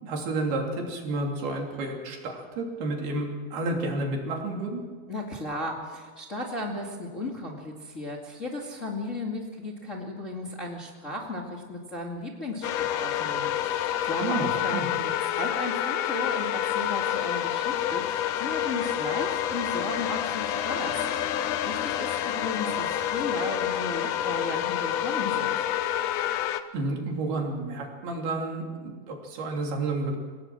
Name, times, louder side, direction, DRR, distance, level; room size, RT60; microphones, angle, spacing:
voice 1, 0.0-4.8 14.2-14.9 26.7-30.2, right 2 dB, 80° right, 1 dB, 5.0 m, -31 dB
voice 2, 5.1-25.6, left 1 dB, 25° left, 0 dB, 1.8 m, -35 dB
sound 1, 12.6-26.6, left 11 dB, 70° left, 2.0 m, -28 dB
26.5 x 18.0 x 6.2 m, 1.5 s
omnidirectional pair, 4.4 m